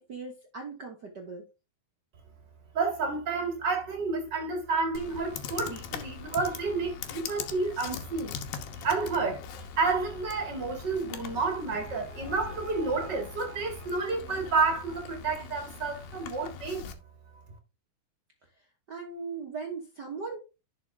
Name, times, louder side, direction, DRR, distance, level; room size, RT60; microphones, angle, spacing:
voice 1, 0.0-1.5 18.9-20.4, right 4 dB, 75° right, 0.9 m, -39 dB
voice 2, 2.7-8.3 8.8-9.4 9.8-16.9, right 4 dB, 35° right, 2.2 m, -30 dB
Computer keyboard, 5.0-16.9, left 7 dB, 85° left, 2.9 m, -41 dB
11.0 x 6.0 x 3.4 m
omnidirectional pair, 4.1 m